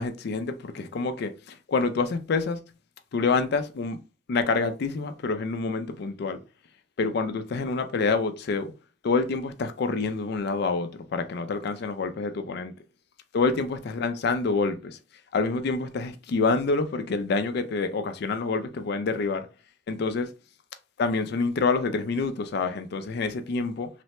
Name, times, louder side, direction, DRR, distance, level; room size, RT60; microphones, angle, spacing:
voice 1, 0.0-2.6 3.1-4.0 4.3-6.4 7.0-8.7 9.0-12.7 13.3-15.0 15.3-19.5 19.9-20.3 21.0-23.9, left 4 dB, 60° left, 0.4 m, -27 dB
3.2 x 2.1 x 2.9 m
head